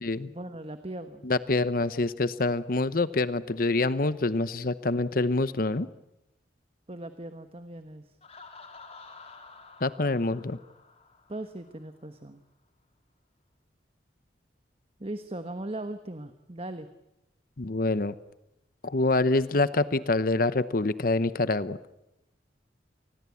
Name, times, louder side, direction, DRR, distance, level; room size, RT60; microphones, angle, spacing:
voice 1, 0.3-1.3 6.9-8.2 11.3-12.4 15.0-16.9, right 1 dB, 30° right, 9 dB, 1.2 m, -39 dB
voice 2, 1.2-5.9 9.8-10.6 17.6-18.1 18.8-21.8, left 2 dB, 55° left, 15 dB, 0.9 m, -26 dB
Laughter, 8.2-11.9, left 4 dB, 35° left, 3.5 m, -50 dB
28.5 x 20.5 x 8.5 m, 0.88 s
head